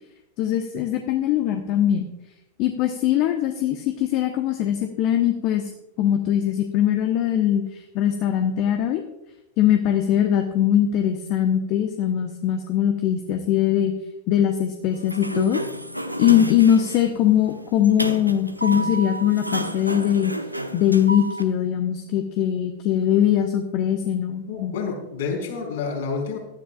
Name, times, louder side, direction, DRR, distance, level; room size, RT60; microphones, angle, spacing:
voice 1, 0.4-2.1 2.6-5.6 6.0-9.0 9.6-13.9 14.3-15.6 16.2-20.3 20.7-24.7, left 10 dB, 40° left, 5 dB, 1.1 m, -21 dB
Sliding door, 14.9-21.4, equal, 90° right, 0.9 m, -31 dB
voice 2, 24.5-26.4, left 5 dB, 60° left, 0 dB, 4.6 m, -29 dB
18.5 x 13.0 x 2.5 m, 0.89 s
figure-of-eight pair, 90°, 0 cm